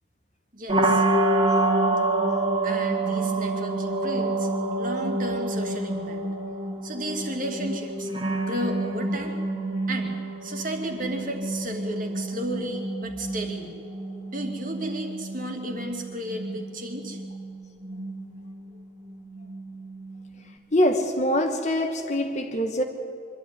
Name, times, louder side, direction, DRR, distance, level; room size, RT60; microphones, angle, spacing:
voice 1, 0.5-1.0 2.6-4.5 4.8-6.2 6.8-8.1 8.5-9.4 9.9-13.7 14.3-17.2, right 1 dB, 45° right, 2 dB, 2.6 m, -33 dB
sound 1, 0.7-20.5, right 2 dB, 25° right, 2.2 m, -28 dB
voice 2, 20.7-22.8, left 1 dB, 35° left, 4 dB, 1.2 m, -24 dB
24.5 x 12.5 x 9.8 m, 2.4 s
head